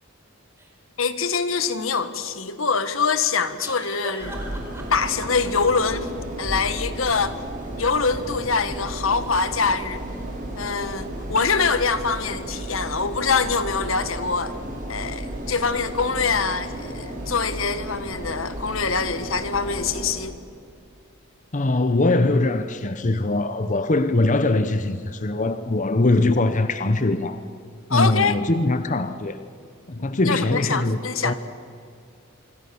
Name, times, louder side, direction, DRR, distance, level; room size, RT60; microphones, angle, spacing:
sound 1, 0.6-0.7 3.6-5.5, right 1 dB, 10° right, 3.8 m, -39 dB
voice 1, 1.0-4.4 4.9-6.1 6.4-7.4 7.7-10.0 10.6-14.5 14.9-20.3 27.9-28.4 30.2-31.3, left 5 dB, 75° left, 11 dB, 1.7 m, -24 dB
sound 2, 4.2-20.1, right 1 dB, 40° right, 6.1 m, -33 dB
voice 2, 21.5-27.4 27.9-29.4 29.9-31.3, left 2 dB, 35° left, 10 dB, 0.9 m, -22 dB
26.0 x 25.0 x 7.1 m, 2.4 s
head